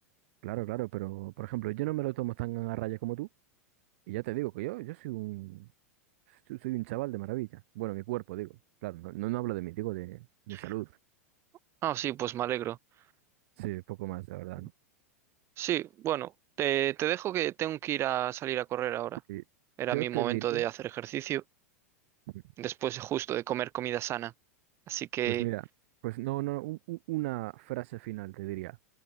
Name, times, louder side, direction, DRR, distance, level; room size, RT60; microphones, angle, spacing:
voice 1, 0.4-3.3 4.1-5.7 6.3-10.9 13.6-14.7 19.3-19.4 19.9-20.6 22.3-22.4 25.3-25.6 26.0-28.8, right 20 dB, 50° right, 0.9 m, -35 dB
voice 2, 11.8-12.8 15.6-16.3 16.6-19.2 19.8-21.4 22.6-24.3 24.9-25.4, right 13 dB, 30° right, 1.2 m, -31 dB
figure-of-eight pair, 90°, 8 cm